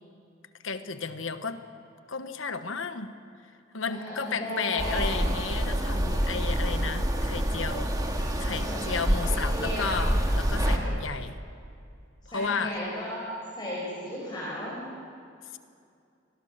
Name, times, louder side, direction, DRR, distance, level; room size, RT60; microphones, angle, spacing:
voice 1, 0.6-1.6 2.1-3.2 3.7-7.9 8.4-11.4 12.3-12.7 15.5-15.6, left 5 dB, 80° left, 9 dB, 1.3 m, -33 dB
voice 2, 3.9-5.1 8.2-8.3 8.6-8.8 9.2-9.9 10.6-10.9 12.3-14.8, equal, 20° left, -7 dB, 5.9 m, -35 dB
sound 1, 4.8-10.8, equal, 20° right, 2.0 m, -27 dB
29.5 x 21.0 x 6.7 m, 2.4 s
head